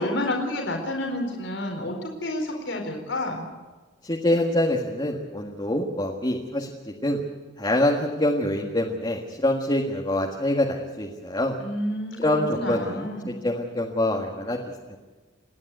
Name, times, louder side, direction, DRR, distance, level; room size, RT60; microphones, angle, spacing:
voice 1, 0.0-3.5 11.6-13.4, left 1 dB, 85° left, 2 dB, 4.4 m, -30 dB
voice 2, 4.0-6.7 7.0-7.2 7.6-11.6 12.2-14.6 14.9-15.0, left 1 dB, 25° left, 0 dB, 1.7 m, -25 dB
28.5 x 11.0 x 9.2 m, 1.3 s
head